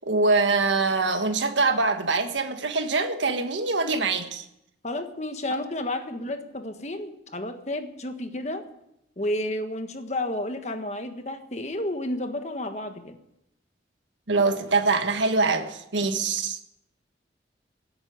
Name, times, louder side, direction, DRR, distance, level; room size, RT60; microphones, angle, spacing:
voice 1, 0.1-4.4 14.3-16.6, right 3 dB, 85° right, 1.6 m, -24 dB
voice 2, 4.8-8.6 9.2-13.2 16.0-16.1, left 1 dB, 40° left, 1.5 m, -31 dB
17.0 x 8.8 x 9.5 m
head